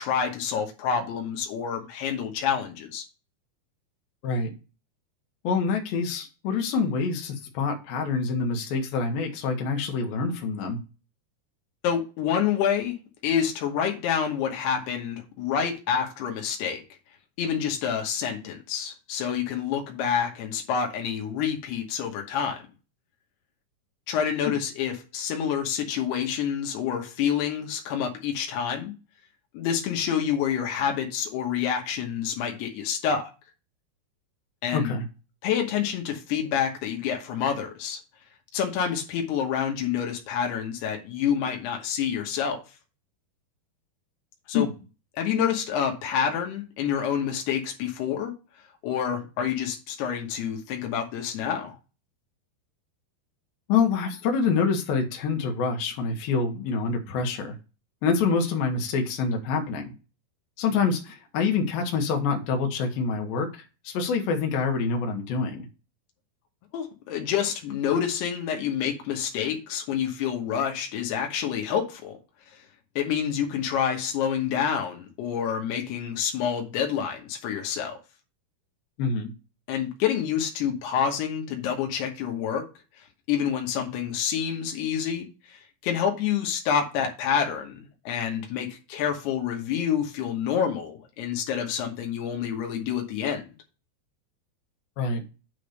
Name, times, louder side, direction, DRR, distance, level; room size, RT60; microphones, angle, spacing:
voice 1, 0.0-3.0 11.8-12.9 13.2-16.8 17.4-22.6 24.1-28.9 29.5-33.3 34.6-34.9 35.4-38.0 38.5-42.6 44.5-44.7 45.1-48.3 48.8-51.8 66.7-72.2 73.0-78.0 79.7-82.6 83.3-93.5, left 8 dB, 90° left, 3.2 m, -28 dB
voice 2, 4.2-4.5 5.4-10.8 24.5-24.6 34.7-35.0 44.5-44.7 53.7-57.5 58.0-59.9 60.6-65.7 79.0-79.3 95.0-95.2, left 5 dB, 70° left, 3.0 m, -26 dB
9.1 x 3.5 x 6.6 m
omnidirectional pair, 4.6 m